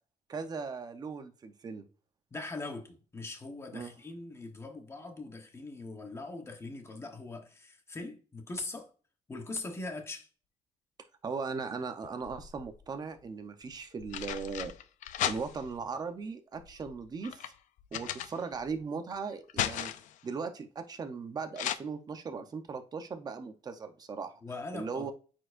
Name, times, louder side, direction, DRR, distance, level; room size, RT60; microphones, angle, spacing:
voice 1, 0.3-1.8 3.7-3.9 11.2-14.7 15.2-17.5 17.9-19.9 20.2-24.3 24.7-25.1, right 5 dB, 30° right, 0.8 m, -38 dB
voice 2, 2.3-8.9 9.3-10.3 24.4-25.1, left 3 dB, 20° left, 1.1 m, -41 dB
sound 1, 12.0-12.8 13.7-15.8 16.5-18.8 19.2-20.2 21.6-21.8, left 11 dB, 85° left, 0.5 m, -36 dB
8.9 x 4.6 x 2.5 m
cardioid pair, 145°, 13 cm